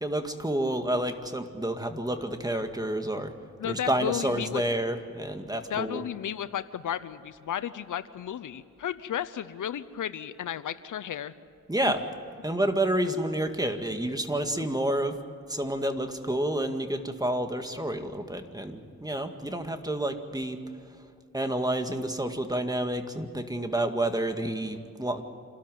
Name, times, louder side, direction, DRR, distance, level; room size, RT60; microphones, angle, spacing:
voice 1, 0.0-3.3 3.6-6.0 11.7-12.0 12.4-15.2 15.5-20.6 21.3-25.2, right 1 dB, 10° right, 6 dB, 2.0 m, -29 dB
voice 2, 3.6-4.6 5.7-11.3 11.8-11.9 14.6-14.7, left 10 dB, 80° left, 14 dB, 0.8 m, -33 dB
27.5 x 13.0 x 9.3 m, 2.4 s
cardioid pair, 60°, 31 cm